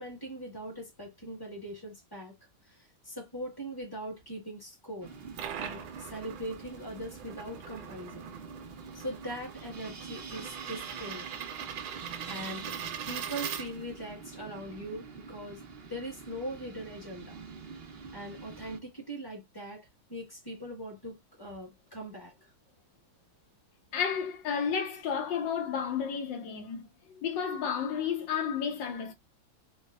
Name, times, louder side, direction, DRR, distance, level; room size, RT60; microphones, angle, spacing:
voice 1, 0.0-2.3 2.6-5.1 5.5-8.2 8.9-11.3 12.3-12.7 13.0-15.6 15.9-17.4 18.1-22.3, right 1 dB, 15° left, 0.9 m, -41 dB
sound 1, 5.0-18.8, right 5 dB, 60° right, 0.6 m, -46 dB
sound 2, 5.1-14.1, right 9 dB, 80° right, 1.4 m, -41 dB
voice 2, 23.9-26.9 27.2-29.1, left 7 dB, 70° left, 1.5 m, -32 dB
4.5 x 2.1 x 2.3 m
omnidirectional pair, 2.1 m